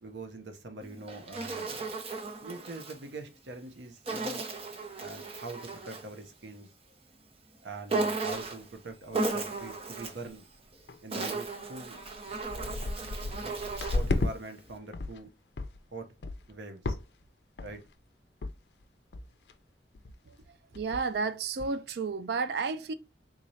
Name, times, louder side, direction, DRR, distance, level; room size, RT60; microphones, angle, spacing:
voice 1, 0.0-2.0 2.4-4.4 5.0-6.7 7.6-10.5 11.0-12.0 12.3-12.4 13.4-13.6 13.9-15.3 15.9-16.1 16.5-17.0 17.6-17.8, right 2 dB, 85° right, 0.7 m, -43 dB
Insect, 0.8-3.0 4.1-6.1 7.9-8.7 9.1-10.3 10.9-14.2, right 3 dB, 35° right, 0.7 m, -35 dB
sound 1, 9.5-9.7 10.0-10.3 10.9-11.0 11.6-11.7 12.0-14.3 14.7-15.2 15.6-15.8 16.2-16.5 16.8-17.3 17.6-17.9 18.4-18.5 18.8-18.9 19.1-19.5 19.9-20.2 20.4-20.5 20.7-21.2 21.6-21.7, left 2 dB, 65° left, 0.5 m, -34 dB
voice 2, 20.7-22.9, right 4 dB, 65° right, 0.4 m, -31 dB
3.7 x 3.1 x 2.6 m
head